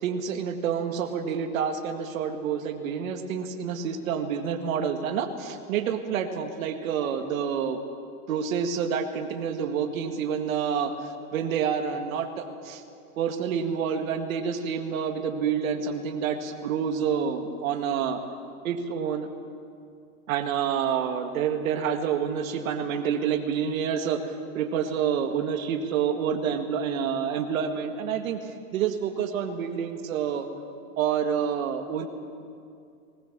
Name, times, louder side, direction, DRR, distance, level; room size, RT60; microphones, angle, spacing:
voice 1, 0.0-7.8 8.3-12.8 13.2-18.2 18.6-19.3 20.3-30.5 31.0-32.1, right 7 dB, 65° right, 6 dB, 2.1 m, -28 dB
20.0 x 19.0 x 7.5 m, 2.5 s
hypercardioid pair, 130°, 43 cm